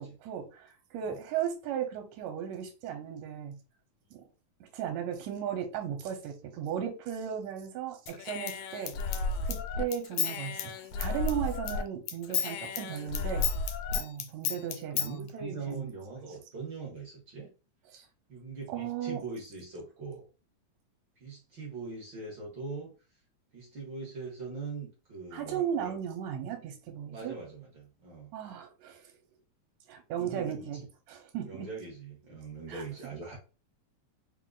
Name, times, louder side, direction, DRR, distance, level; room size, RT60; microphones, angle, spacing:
voice 1, 0.0-3.6 4.1-4.2 4.6-13.5 14.0-15.9 16.3-16.4 17.9-18.1 18.7-19.2 25.3-27.3 28.3-29.1 29.9-30.8 31.1-31.7 32.7-32.8, right 9 dB, 80° right, 1.8 m, -36 dB
Human voice / Scissors, 8.1-11.8 12.1-15.1, left 5 dB, 85° left, 1.4 m, -32 dB
voice 2, 14.8-17.5 18.3-20.2 21.2-22.9 23.5-25.9 27.1-28.3 30.2-30.9 31.4-33.4, right 4 dB, 60° right, 1.3 m, -42 dB
4.6 x 2.2 x 3.7 m
omnidirectional pair, 3.3 m